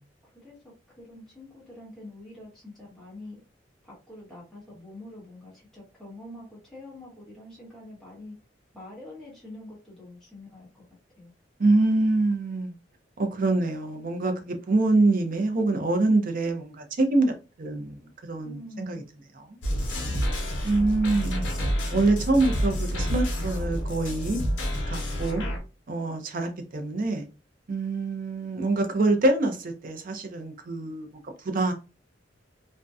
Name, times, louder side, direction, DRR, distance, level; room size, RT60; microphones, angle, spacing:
voice 1, 0.2-0.5 1.0-3.4 3.8-8.3 8.7-10.9 11.2-11.3 18.4-19.0 20.0-20.5, left 1 dB, 5° left, 1.0 m, -45 dB
voice 2, 11.6-12.7 13.2-19.0 19.4-19.5 20.6-21.5 21.9-24.4 24.9-25.5 25.9-27.3 27.7-31.1 31.4-31.7, right 2 dB, 50° right, 0.5 m, -25 dB
sound 1, 19.6-25.6, equal, 80° left, 0.7 m, -28 dB
2.6 x 2.1 x 2.3 m
head